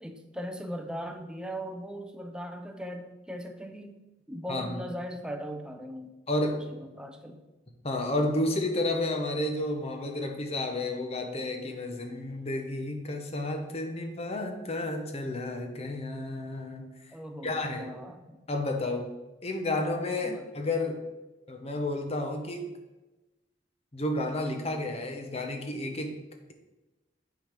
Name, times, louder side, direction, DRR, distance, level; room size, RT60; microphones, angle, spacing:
voice 1, 0.0-4.0 4.3-6.1 6.5-7.4 17.1-18.4 20.2-20.5, equal, 5° right, 6 dB, 0.6 m, -39 dB
voice 2, 4.5-4.8 6.3-6.6 7.8-17.1 17.4-17.9 18.5-19.1 19.4-21.0 21.5-22.7 23.9-26.2, left 1 dB, 35° left, 4 dB, 1.0 m, -31 dB
9.1 x 4.0 x 5.1 m, 1.1 s
head